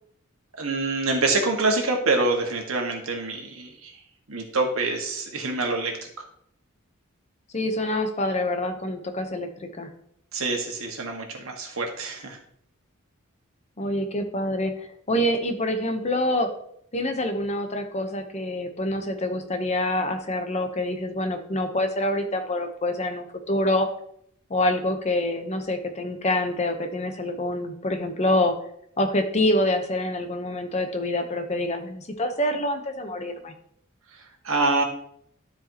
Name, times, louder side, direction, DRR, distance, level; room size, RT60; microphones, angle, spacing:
voice 1, 0.6-4.0 4.3-6.1 10.3-12.4 34.1-34.8, right 3 dB, 85° right, 2 dB, 1.7 m, -26 dB
voice 2, 7.5-9.9 13.8-16.5 16.9-23.9 24.5-28.5 29.0-33.5, left 1 dB, 35° left, 6 dB, 0.9 m, -26 dB
12.5 x 4.9 x 2.9 m, 0.69 s
head